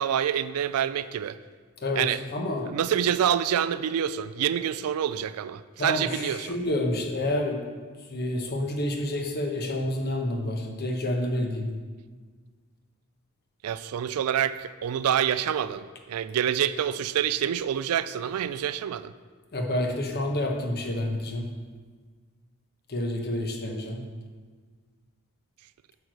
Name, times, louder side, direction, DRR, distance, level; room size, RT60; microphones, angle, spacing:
voice 1, 0.0-1.4 2.0-2.2 2.7-6.5 13.6-19.1, right 9 dB, 85° right, 14 dB, 0.3 m, -27 dB
voice 2, 2.3-2.7 5.8-7.6 8.0-11.7 19.5-21.5 22.9-24.0, left 1 dB, 45° left, 2 dB, 1.1 m, -29 dB
8.1 x 4.7 x 6.4 m, 1.5 s
head